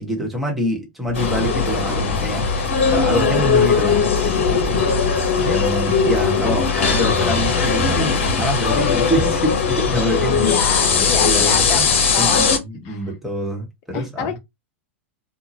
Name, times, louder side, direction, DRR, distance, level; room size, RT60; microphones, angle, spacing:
voice 1, 0.0-2.4 2.9-4.8 5.4-10.5 10.9-11.9 12.2-14.3, equal, ahead, 1.3 m, -25 dB
sound 1, 1.1-12.6, left 5 dB, 75° left, 0.9 m, -19 dB
sound 2, 1.1-8.8, left 1 dB, 45° right, 0.7 m, -31 dB
voice 2, 10.3-11.8 12.1-12.4 12.8-13.0 13.9-14.4, left 9 dB, 45° left, 0.6 m, -26 dB
2.8 x 2.3 x 2.7 m
hypercardioid pair, 105°, 7 cm